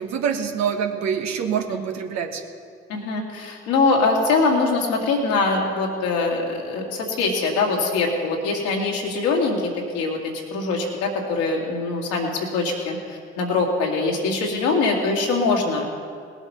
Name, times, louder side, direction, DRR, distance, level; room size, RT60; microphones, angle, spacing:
voice 1, 0.0-2.4, right 7 dB, 70° right, 5 dB, 1.3 m, -25 dB
voice 2, 2.9-10.2 10.5-15.9, left 3 dB, 80° left, -1 dB, 2.1 m, -23 dB
19.0 x 8.2 x 5.7 m, 2.2 s
hypercardioid pair, 45°, 29 cm